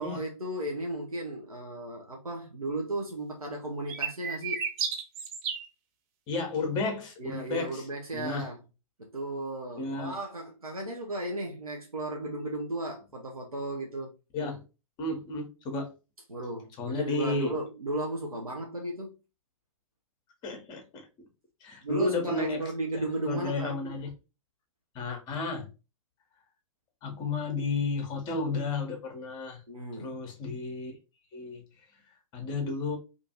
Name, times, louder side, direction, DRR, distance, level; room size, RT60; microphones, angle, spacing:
voice 1, 0.0-4.6 7.2-8.6 9.1-14.1 16.3-19.1 21.8-23.8 29.7-30.1, right 1 dB, 85° right, 0.5 m, -35 dB
sound 1, 3.9-5.7, right 6 dB, 25° right, 0.4 m, -32 dB
voice 2, 6.3-7.8 8.1-8.5 9.8-10.2 14.3-14.6 15.0-15.9 16.8-17.5 20.4-21.1 21.6-22.6 23.2-24.1 24.9-25.7 27.0-29.6 30.0-31.0 31.3-31.6 32.3-33.0, left 3 dB, 25° left, 0.7 m, -32 dB
2.5 x 2.4 x 2.7 m
figure-of-eight pair, 110°, 18 cm